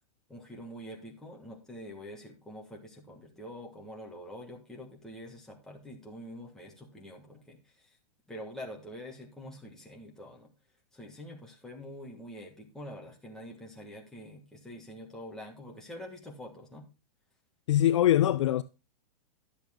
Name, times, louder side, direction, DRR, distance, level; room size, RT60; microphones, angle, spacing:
voice 1, 0.3-8.0 8.3-10.5 10.9-16.8, equal, ahead, 1.4 m, -46 dB
voice 2, 17.7-18.6, left 12 dB, 45° left, 0.4 m, -23 dB
10.5 x 7.2 x 3.5 m
supercardioid pair, 175°, 21 cm